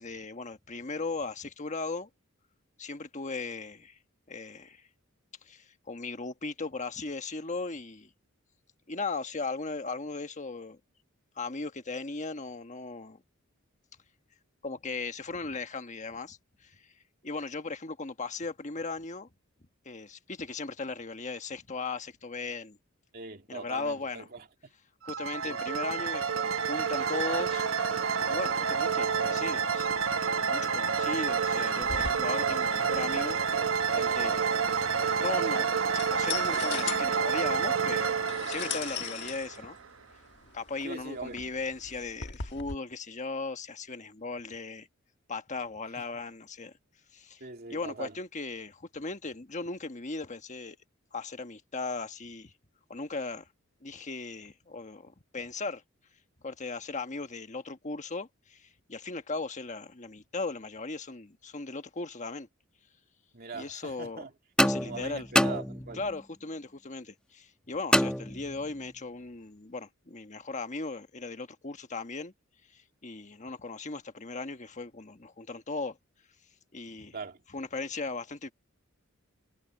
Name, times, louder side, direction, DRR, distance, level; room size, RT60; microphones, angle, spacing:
voice 1, 0.0-2.1 2.8-4.0 4.3-4.8 5.4-8.1 8.9-10.8 11.3-13.2 14.6-16.9 17.2-19.3 19.8-22.8 23.5-24.3 25.0-27.7 28.3-33.6 33.9-34.6 35.0-35.8 36.1-39.8 40.5-44.9 45.3-46.7 47.1-50.8 51.1-52.5 52.9-53.5 53.8-55.8 56.4-62.5 63.5-64.2 64.6-65.3 65.9-72.3 72.7-76.0 76.7-77.2 77.5-78.5, left 3 dB, 35° left, 1.3 m, -37 dB
voice 2, 23.1-24.5 25.4-25.6 40.8-41.4 47.4-48.1 63.3-64.3 64.8-66.0 77.1-77.4, right 4 dB, 50° right, 2.7 m, -41 dB
sound 1, 25.0-39.9, right 6 dB, 70° right, 1.2 m, -29 dB
sound 2, 31.8-42.7, left 7 dB, 55° left, 1.4 m, -41 dB
sound 3, 64.6-66.2 67.9-68.9, equal, 5° left, 1.3 m, -27 dB
head